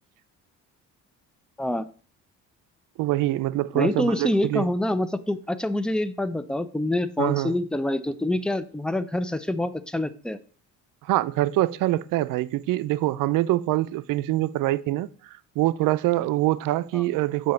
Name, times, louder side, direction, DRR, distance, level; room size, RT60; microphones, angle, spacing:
voice 1, 3.0-4.7 7.2-7.5 11.0-15.1 15.6-17.5, right 16 dB, 75° right, 0.5 m, -24 dB
voice 2, 3.7-10.4 16.9-17.0, left 1 dB, 5° left, 0.4 m, -26 dB
7.4 x 2.9 x 5.7 m
cardioid pair, 100°, 33 cm